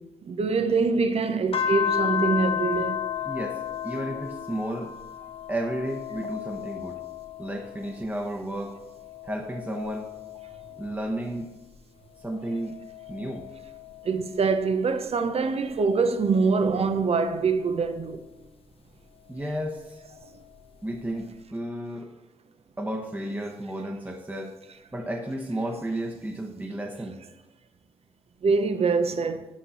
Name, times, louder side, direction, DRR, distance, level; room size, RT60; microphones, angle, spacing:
voice 1, 0.0-3.0 14.0-18.3 20.3-20.4 28.4-29.5, right 4 dB, 50° right, 0.9 m, -24 dB
sound 1, 1.5-8.2 8.7-11.6 12.2-15.0 15.7-18.2 19.5-20.6, left 8 dB, 45° left, 0.8 m, -34 dB
voice 2, 3.3-4.9 5.5-7.0 7.4-8.8 9.2-10.1 10.8-11.5 12.2-12.8 13.1-13.5 19.3-20.0 20.8-22.1 22.8-24.5 24.9-27.2, right 1 dB, 15° right, 1.1 m, -33 dB
10.5 x 5.4 x 4.2 m
hypercardioid pair, 45°, 13 cm